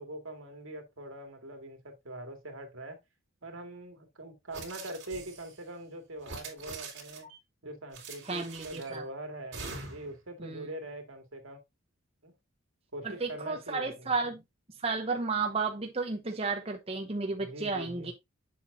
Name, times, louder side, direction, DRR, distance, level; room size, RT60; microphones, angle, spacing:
voice 1, 0.0-3.0 3.4-7.3 7.6-11.6 12.2-12.3 12.9-14.1 17.4-18.1, right 1 dB, 80° right, 2.0 m, -43 dB
sound 1, 4.5-5.6 6.2-7.4 7.9-9.0 9.5-10.2, right 4 dB, 60° right, 2.8 m, -44 dB
voice 2, 8.3-9.0 10.4-10.7 13.0-14.4 14.8-18.1, right 4 dB, 30° right, 0.7 m, -33 dB
7.6 x 5.9 x 2.6 m
head